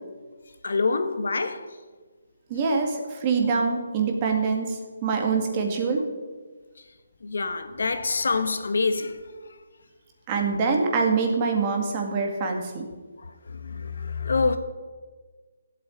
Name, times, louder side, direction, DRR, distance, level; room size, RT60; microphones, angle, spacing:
voice 1, 0.6-1.6 7.2-9.2 13.2-14.6, left 4 dB, 70° left, 1.6 m, -26 dB
voice 2, 2.5-6.0 10.3-12.9, right 4 dB, 20° right, 2.0 m, -25 dB
16.0 x 8.6 x 9.0 m
hypercardioid pair, 175°, 0 cm